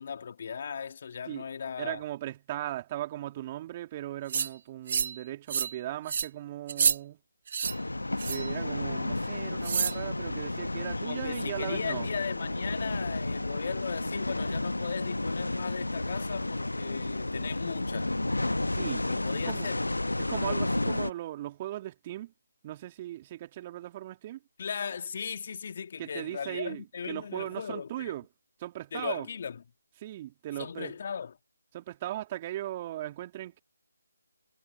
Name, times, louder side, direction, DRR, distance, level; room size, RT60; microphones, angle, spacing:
voice 1, 0.0-2.0 11.0-18.1 19.0-19.8 24.6-28.1 28.9-29.6 30.6-31.3, left 6 dB, 45° left, 2.0 m, -37 dB
voice 2, 1.8-7.2 8.3-12.1 18.7-19.1 19.3-19.7 20.2-22.3 22.6-24.4 26.0-28.3 28.6-29.3 30.0-31.0 31.7-33.6, right 14 dB, 25° right, 2.9 m, -38 dB
sound 1, 4.3-4.5 4.9-5.2 5.5-5.8 6.1-6.3 6.7-7.0 7.5-7.7 8.2-8.5 9.6-10.0, right 7 dB, 40° right, 0.6 m, -28 dB
sound 2, 7.6-21.1, left 2 dB, 80° left, 1.1 m, -32 dB
figure-of-eight pair, 150°, 0 cm